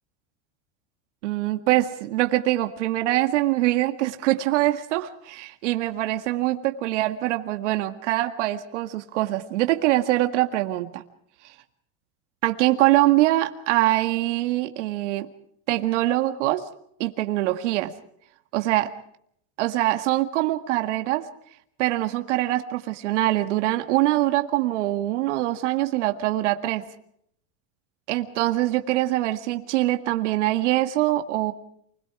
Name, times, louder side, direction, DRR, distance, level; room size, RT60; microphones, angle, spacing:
voice 1, 1.2-11.0 11.4-11.5 12.4-15.3 15.7-16.7 17.0-17.9 18.5-18.9 19.6-21.3 21.8-26.8 28.1-31.5, right 16 dB, 80° right, 6 dB, 1.9 m, -23 dB
28.5 x 21.5 x 4.8 m, 0.70 s
supercardioid pair, 150°, 36 cm